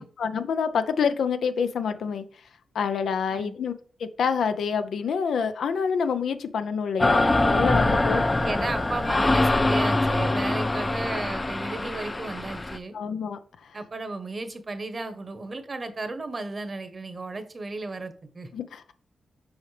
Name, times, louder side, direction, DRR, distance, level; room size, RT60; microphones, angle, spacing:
voice 1, 0.2-2.2 2.7-3.7 4.0-8.2 12.9-13.8 18.5-18.9, left 6 dB, 80° left, 10 dB, 0.5 m, -27 dB
sound 1, 7.0-12.8, left 2 dB, 25° left, 0.5 m, -23 dB
voice 2, 8.4-13.0 13.7-18.5, right 3 dB, 40° right, 10 dB, 1.0 m, -34 dB
7.0 x 5.0 x 3.3 m, 0.43 s
cardioid pair, 75°, 0 cm